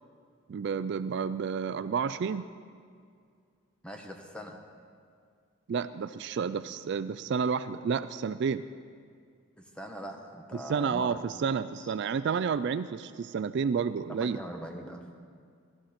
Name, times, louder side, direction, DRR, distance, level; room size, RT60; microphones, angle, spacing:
voice 1, 0.5-2.5 5.7-8.6 10.7-14.4, right 6 dB, 55° right, 13 dB, 0.3 m, -30 dB
voice 2, 3.8-4.6 9.6-11.2 11.8-11.9 14.1-15.0, equal, 5° left, 3 dB, 1.0 m, -42 dB
15.5 x 13.5 x 4.3 m, 2.2 s
head